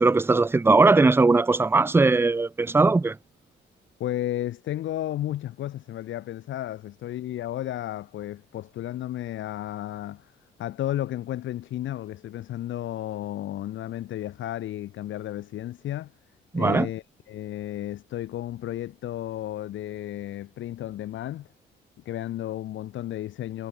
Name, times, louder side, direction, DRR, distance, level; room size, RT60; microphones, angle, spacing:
voice 1, 0.0-3.2 16.5-16.9, right 3 dB, 10° right, 0.4 m, -19 dB
voice 2, 4.0-10.3 10.6-16.1 16.5-21.5 22.0-23.7, left 13 dB, 75° left, 1.4 m, -33 dB
cardioid pair, 90°, 20 cm